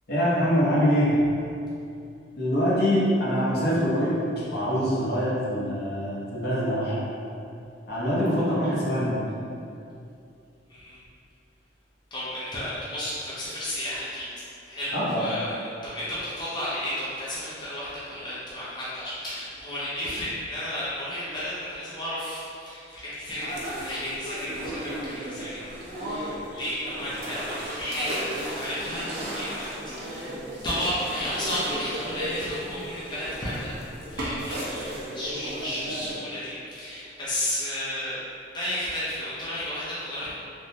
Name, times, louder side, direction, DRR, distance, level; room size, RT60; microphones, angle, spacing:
voice 1, 0.1-1.2 2.4-7.0 7.9-9.2 14.9-15.3, equal, 60° left, -7 dB, 0.7 m, -24 dB
voice 2, 10.7-11.0 12.1-14.3 14.7-30.3 30.6-33.7 34.1-38.2 38.5-40.3, left 1 dB, 25° left, -10 dB, 0.6 m, -33 dB
sound 1, 23.4-36.2, right 1 dB, 60° right, 0.6 m, -35 dB
3.4 x 2.1 x 2.6 m, 2.6 s
head